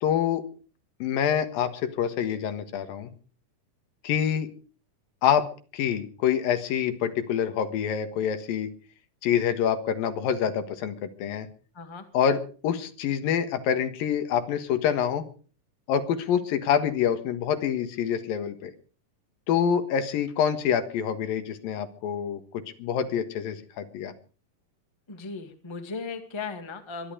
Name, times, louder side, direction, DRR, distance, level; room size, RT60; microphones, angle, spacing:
voice 1, 0.0-0.4 1.0-3.1 4.0-4.5 5.2-5.5 5.7-8.7 9.2-11.5 12.1-15.2 15.9-18.7 19.5-22.4 22.8-24.1, left 8 dB, 80° left, 9 dB, 3.2 m, -26 dB
voice 2, 11.7-12.0 25.1-27.1, left 4 dB, 15° left, 6 dB, 1.1 m, -37 dB
24.0 x 11.0 x 5.1 m, 0.39 s
omnidirectional pair, 4.1 m